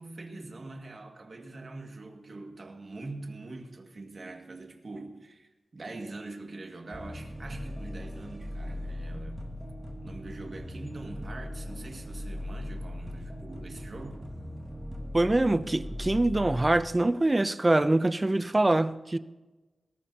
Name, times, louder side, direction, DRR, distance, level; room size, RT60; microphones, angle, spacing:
voice 1, 0.0-9.5 10.0-14.3, right 2 dB, 50° right, 2.0 m, -43 dB
sound 1, 6.9-16.8, left 1 dB, 5° right, 2.4 m, -39 dB
voice 2, 15.1-19.2, right 2 dB, 20° right, 0.6 m, -24 dB
21.0 x 18.5 x 2.9 m
wide cardioid pair, 115°, 0 cm